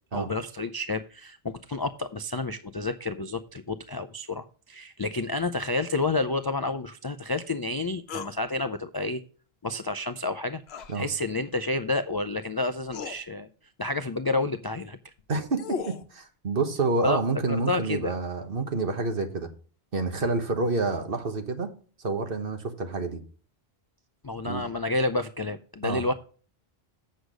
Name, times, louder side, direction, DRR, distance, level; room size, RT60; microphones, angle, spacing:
voice 1, 0.1-9.2 9.6-10.6 10.9-13.5 13.8-15.0 17.0-17.2 17.5-18.1 20.2-20.3 24.2-26.1, left 2 dB, 40° left, 9 dB, 0.3 m, -30 dB
sound 1, 8.1-8.4 10.7-10.9 12.3-12.4 12.9-13.2 15.2-16.1, left 6 dB, 85° left, 1.1 m, -36 dB
voice 2, 15.3-19.5 19.9-21.7 22.0-23.2 24.4-24.6 25.8-26.0, right 3 dB, 60° right, 6 dB, 1.5 m, -28 dB
8.1 x 6.5 x 4.9 m, 0.41 s
omnidirectional pair, 1.0 m